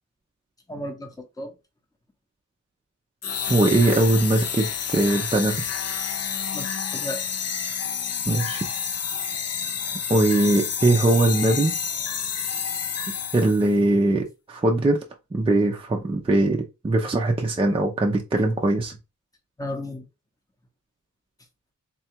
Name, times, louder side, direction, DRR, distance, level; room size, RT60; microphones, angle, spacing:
voice 1, 0.7-1.5 6.5-7.2 19.6-20.1, left 1 dB, 10° left, 0.7 m, -34 dB
sound 1, 3.2-13.8, left 7 dB, 55° left, 0.5 m, -29 dB
voice 2, 3.5-5.6 8.3-8.6 10.1-11.8 13.3-15.0 15.3-18.9, right 2 dB, 20° right, 0.5 m, -21 dB
3.7 x 2.3 x 4.3 m
wide cardioid pair, 170°, 31 cm